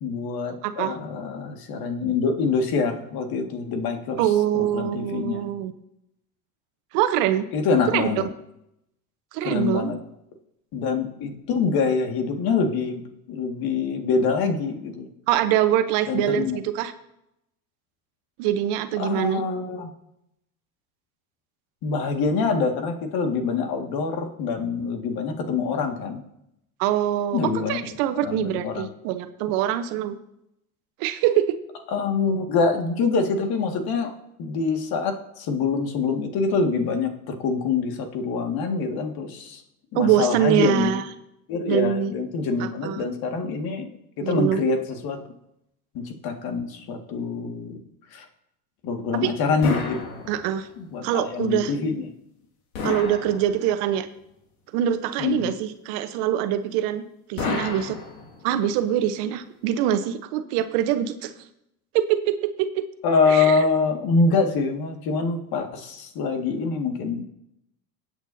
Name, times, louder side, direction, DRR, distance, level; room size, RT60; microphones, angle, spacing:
voice 1, 0.0-5.5 7.5-8.2 9.4-10.0 10.7-13.0 13.3-15.1 16.1-16.6 19.0-19.9 21.8-26.2 27.3-27.8 28.2-28.9 31.9-34.1 34.4-39.6 39.9-41.0 41.5-43.9 44.2-45.2 45.9-47.8 48.1-48.3 48.8-50.3 50.8-52.0 55.2-55.5 63.0-67.2, left 4 dB, 55° left, 5 dB, 2.0 m, -25 dB
voice 2, 0.6-0.9 4.2-5.7 6.9-7.5 7.9-8.1 9.3-9.9 15.3-16.9 18.4-19.4 26.8-27.4 27.7-30.2 31.0-31.6 39.9-41.0 41.7-42.1 42.6-43.0 44.2-44.6 49.2-49.3 50.3-50.7 51.0-51.7 52.8-54.1 54.7-57.0 57.3-58.0 58.4-61.3 61.9-62.8 63.3-63.6, right 11 dB, 65° right, 10 dB, 1.1 m, -24 dB
sound 1, 49.6-50.8 52.7-54.0 57.4-58.7, left 4 dB, 85° left, 2.1 m, -31 dB
21.0 x 8.3 x 2.7 m, 0.81 s
hypercardioid pair, 85°, 43 cm